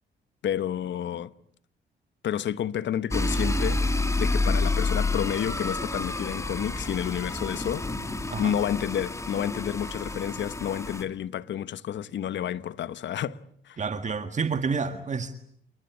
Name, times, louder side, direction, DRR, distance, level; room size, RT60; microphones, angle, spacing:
voice 1, 0.4-1.3 2.2-3.8 4.2-7.8 8.4-13.4 13.7-13.8, left 10 dB, 65° left, 1.3 m, -30 dB
sound 1, 3.1-11.0, left 2 dB, 15° left, 2.8 m, -29 dB
voice 2, 13.8-15.3, right 5 dB, 35° right, 1.8 m, -29 dB
29.0 x 21.0 x 9.6 m
cardioid pair, 90°, 20 cm